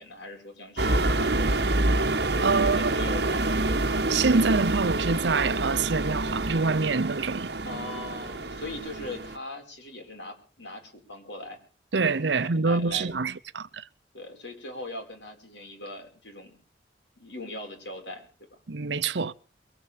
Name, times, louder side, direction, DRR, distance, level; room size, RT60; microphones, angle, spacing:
voice 1, 0.0-1.6 2.5-3.4 7.7-11.6 12.3-13.1 14.1-16.5 17.2-18.6, left 1 dB, 90° left, 5.3 m, -40 dB
sound 1, 0.8-9.4, right 2 dB, 65° right, 1.3 m, -27 dB
voice 2, 2.4-3.1 4.1-7.5 11.9-13.8 18.7-19.3, right 4 dB, 80° right, 0.8 m, -26 dB
22.5 x 7.8 x 7.4 m
head